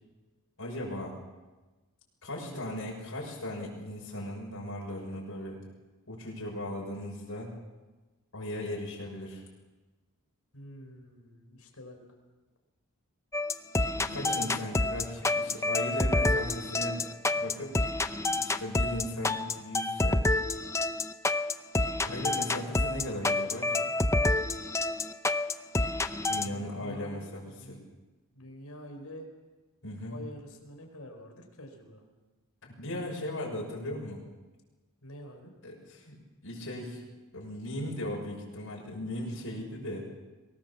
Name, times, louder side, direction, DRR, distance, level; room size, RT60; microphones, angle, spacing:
voice 1, 0.6-1.2 2.2-5.6 6.1-7.6 8.3-9.4 14.0-17.8 18.4-20.3 22.0-23.9 26.3-27.8 29.8-30.2 32.6-34.2 35.6-36.1 36.4-37.0 37.3-40.1, left 1 dB, 65° left, -3 dB, 6.5 m, -37 dB
voice 2, 2.4-2.8 10.5-12.0 14.1-14.8 22.0-22.3 23.0-23.1 26.4-27.8 28.3-29.3 30.0-32.0 35.0-35.5, equal, 85° left, 3 dB, 4.9 m, -47 dB
sound 1, 13.3-26.5, left 2 dB, 15° left, 0.7 m, -28 dB
23.5 x 19.5 x 7.3 m, 1.2 s
head